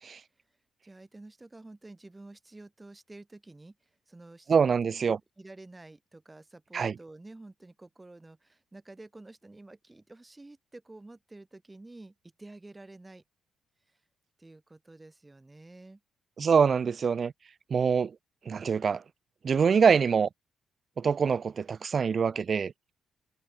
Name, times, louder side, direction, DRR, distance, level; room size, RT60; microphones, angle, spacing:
voice 1, 0.8-4.8 5.0-13.2 13.9-14.0 14.4-16.0, right 2 dB, 15° right, 5.3 m, -50 dB
voice 2, 4.5-5.2 6.7-6.9 16.4-17.3 17.7-18.1 18.5-19.0 19.4-20.3 21.0-22.7, right 6 dB, 45° right, 0.9 m, -24 dB
cardioid pair, 90°, 0 cm